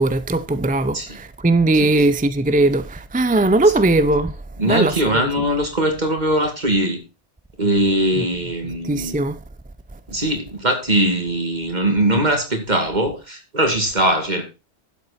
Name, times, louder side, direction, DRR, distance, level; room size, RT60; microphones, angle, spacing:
voice 1, 0.0-4.3 4.7-5.2 8.9-9.4, right 2 dB, 15° right, 0.3 m, -19 dB
voice 2, 1.7-2.2 4.6-7.0 7.6-9.2 10.1-14.4, right 1 dB, 40° right, 2.6 m, -21 dB
11.5 x 7.9 x 4.3 m
omnidirectional pair, 1.2 m